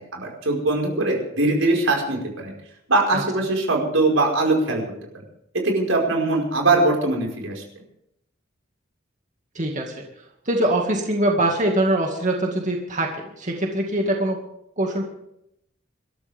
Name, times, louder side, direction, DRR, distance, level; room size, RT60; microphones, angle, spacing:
voice 1, 0.0-2.5 2.9-4.8 5.1-5.2 5.5-7.6, right 2 dB, 90° right, 0 dB, 5.1 m, -21 dB
voice 2, 9.6-10.0 10.5-14.4 14.8-15.0, right 1 dB, 40° right, 1 dB, 2.2 m, -23 dB
26.5 x 13.5 x 3.6 m, 0.78 s
head